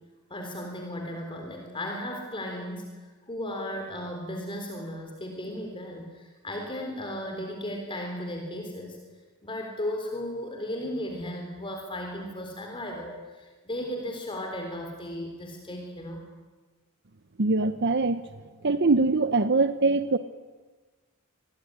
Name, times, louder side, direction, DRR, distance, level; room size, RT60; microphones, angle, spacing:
voice 1, 0.3-9.0 9.4-16.2, left 1 dB, 25° left, 2 dB, 3.8 m, -35 dB
voice 2, 17.4-18.2 18.6-20.2, right 3 dB, 50° right, 11 dB, 0.9 m, -23 dB
27.5 x 21.5 x 10.0 m, 1.3 s
head